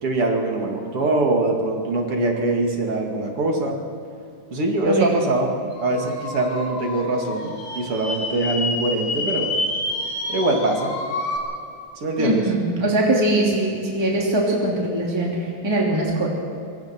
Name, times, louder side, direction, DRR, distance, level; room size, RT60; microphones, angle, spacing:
voice 1, 0.0-3.7 4.5-5.5 5.8-9.5 10.3-10.9 12.0-12.4, right 2 dB, 50° right, 1 dB, 3.2 m, -23 dB
sound 1, 5.7-11.4, left 2 dB, 60° left, 4.1 m, -29 dB
voice 2, 12.2-16.3, right 1 dB, 10° right, -3 dB, 2.8 m, -22 dB
24.5 x 24.0 x 4.5 m, 2.6 s
omnidirectional pair, 3.3 m